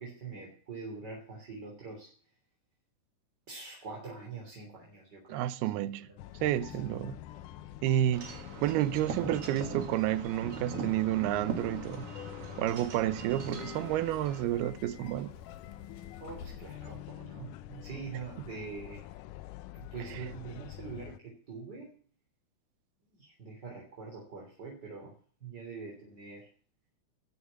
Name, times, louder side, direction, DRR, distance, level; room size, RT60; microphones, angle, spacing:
voice 1, 0.0-2.1 3.5-5.4 6.1-6.2 6.7-6.8 16.2-19.0 19.7-21.9 23.1-26.5, right 4 dB, 25° right, 3.4 m, -44 dB
voice 2, 5.3-6.1 6.4-7.2 7.8-12.1 12.6-15.3, right 13 dB, 80° right, 2.7 m, -30 dB
sound 1, 6.2-21.2, left 13 dB, 85° left, 1.8 m, -46 dB
Wind chime / Wind, 8.1-14.4, right 4 dB, 45° right, 2.5 m, -41 dB
Subway metro underground, 12.7-17.0, left 6 dB, 60° left, 2.9 m, -51 dB
13.0 x 8.2 x 8.2 m
omnidirectional pair, 4.6 m